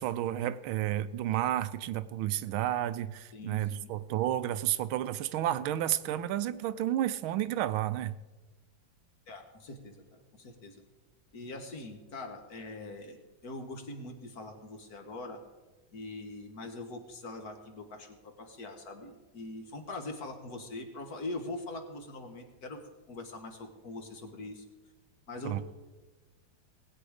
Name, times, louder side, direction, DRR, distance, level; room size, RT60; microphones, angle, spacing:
voice 1, 0.0-8.2 25.4-25.6, right 12 dB, 85° right, 14 dB, 1.4 m, -31 dB
voice 2, 3.3-3.9 9.3-10.8 11.3-13.2 13.4-15.4 15.9-24.6 25.3-25.6, left 2 dB, 50° left, 5 dB, 1.7 m, -42 dB
19.5 x 8.7 x 4.9 m, 1.2 s
omnidirectional pair, 2.2 m